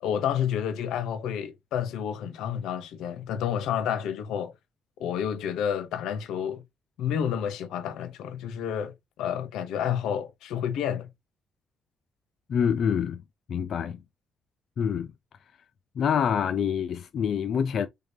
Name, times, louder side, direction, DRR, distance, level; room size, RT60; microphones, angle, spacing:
voice 1, 0.0-4.5 5.0-6.6 7.0-11.1, left 9 dB, 85° left, 0.7 m, -30 dB
voice 2, 12.5-13.2 13.5-14.0 14.8-15.1 16.0-17.9, left 7 dB, 60° left, 0.4 m, -26 dB
3.7 x 3.5 x 2.7 m
cardioid pair, 90°, 0 cm